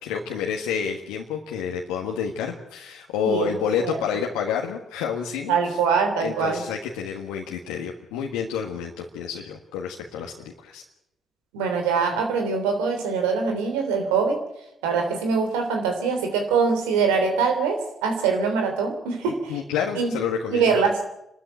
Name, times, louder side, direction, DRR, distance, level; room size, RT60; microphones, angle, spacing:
voice 1, 0.0-5.6 6.2-10.8 19.5-20.7, left 7 dB, 80° left, 0 dB, 1.6 m, -29 dB
voice 2, 5.5-6.6 11.5-14.4 14.8-19.6 20.0-20.1 20.5-21.0, right 5 dB, 85° right, 4 dB, 3.2 m, -23 dB
27.5 x 13.0 x 9.0 m, 0.86 s
hypercardioid pair, 45°, 0 cm